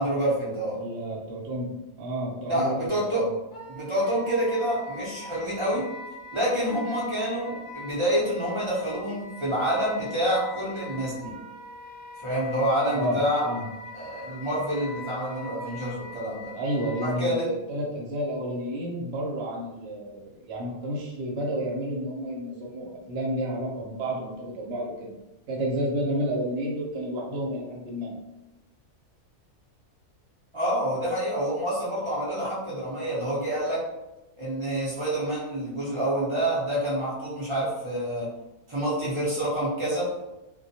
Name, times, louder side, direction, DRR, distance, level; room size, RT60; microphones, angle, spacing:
voice 1, 0.0-0.8 2.5-3.2 3.7-5.9 6.3-11.3 12.2-13.5 13.9-16.5 17.0-17.5 30.5-33.8 34.4-38.3 38.7-40.1, right 1 dB, 35° right, -8 dB, 0.5 m, -27 dB
voice 2, 0.7-1.7 2.0-3.3 12.9-13.2 13.4-13.7 16.5-25.1 25.5-28.1, equal, 60° right, -2 dB, 0.8 m, -31 dB
Wind instrument woodwind instrument, 3.5-17.3, left 1 dB, 65° left, 0.6 m, -42 dB
2.2 x 2.2 x 2.7 m, 0.98 s
omnidirectional pair, 1.5 m